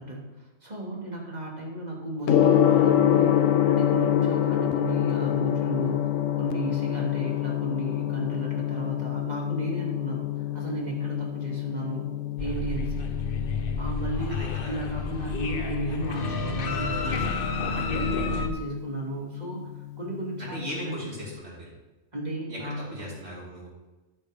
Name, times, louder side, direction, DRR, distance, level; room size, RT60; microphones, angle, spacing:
voice 1, 0.0-6.0 6.3-12.1 12.4-13.1 13.8-19.6 20.0-21.0 22.1-23.1, right 2 dB, 35° right, -3 dB, 3.0 m, -34 dB
Gong, 2.2-21.3, left 11 dB, 85° left, 1.1 m, -27 dB
sound 1, 12.4-18.5, left 4 dB, 50° left, 1.1 m, -30 dB
voice 2, 14.3-14.8 20.4-21.7 22.5-23.7, equal, 60° right, -7 dB, 4.7 m, -38 dB
13.0 x 11.0 x 3.7 m, 1.1 s
omnidirectional pair, 1.3 m